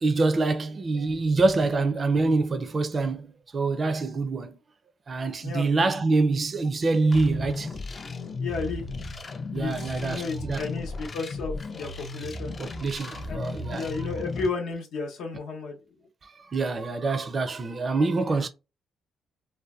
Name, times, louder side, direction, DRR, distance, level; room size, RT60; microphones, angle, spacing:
voice 1, 0.0-4.6 5.1-7.8 9.5-10.6 12.6-13.9 16.2-18.5, right 3 dB, 35° right, 0.4 m, -25 dB
sound 1, 7.1-14.5, left 3 dB, 35° left, 0.4 m, -35 dB
voice 2, 8.4-8.9 9.3-12.5 13.3-16.0, left 4 dB, 80° left, 0.8 m, -33 dB
2.6 x 2.1 x 2.3 m
cardioid pair, 90°, 0 cm